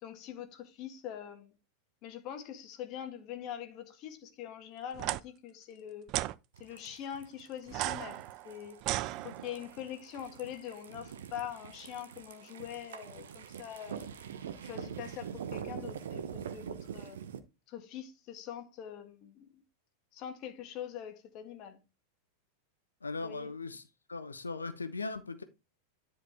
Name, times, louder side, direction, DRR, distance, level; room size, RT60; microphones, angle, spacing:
voice 1, 0.0-1.5 2.0-6.1 6.6-8.8 9.2-14.1 14.6-17.2 17.7-19.6 20.1-21.8 23.2-23.5, left 10 dB, 40° left, 1.5 m, -43 dB
sound 1, 4.9-5.2 6.1-6.3 7.7-9.7, right 16 dB, 40° right, 0.4 m, -35 dB
sound 2, 6.5-17.4, right 8 dB, 60° right, 0.9 m, -44 dB
voice 2, 23.0-23.8 24.1-25.4, left 3 dB, 75° left, 1.0 m, -38 dB
10.0 x 4.7 x 3.5 m
figure-of-eight pair, 90°, 0 cm